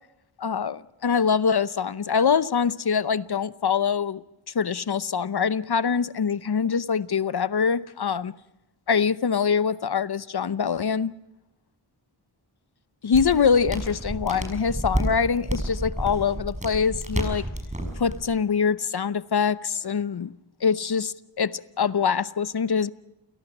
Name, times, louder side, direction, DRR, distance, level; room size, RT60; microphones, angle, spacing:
voice 1, 0.4-4.2 4.5-8.4 8.9-11.1 13.0-17.5 18.0-20.3 20.6-22.9, left 6 dB, 50° left, 0.8 m, -24 dB
sound 1, 13.1-18.2, right 1 dB, 15° right, 6.2 m, -30 dB
29.5 x 17.5 x 6.1 m
wide cardioid pair, 55°, 49 cm